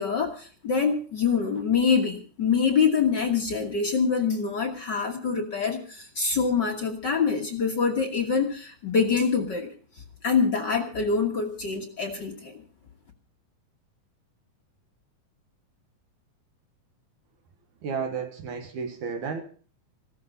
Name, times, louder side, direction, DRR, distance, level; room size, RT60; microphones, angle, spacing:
voice 1, 0.0-9.7 10.2-12.6, left 5 dB, 65° left, 2 dB, 1.1 m, -25 dB
voice 2, 17.8-19.4, right 5 dB, 65° right, 6 dB, 2.4 m, -32 dB
15.5 x 13.5 x 5.4 m, 0.41 s
omnidirectional pair, 4.3 m